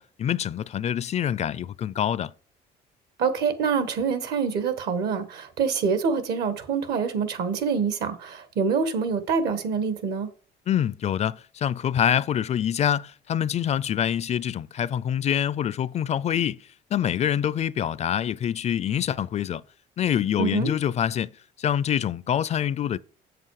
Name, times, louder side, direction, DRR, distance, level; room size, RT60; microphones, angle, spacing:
voice 1, 0.0-2.3 10.7-19.6 20.0-21.3 21.6-23.0, left 9 dB, 40° left, 0.4 m, -25 dB
voice 2, 3.2-10.3 20.4-20.7, right 5 dB, 70° right, 1.6 m, -26 dB
7.7 x 7.4 x 4.8 m
cardioid pair, 110°, 17 cm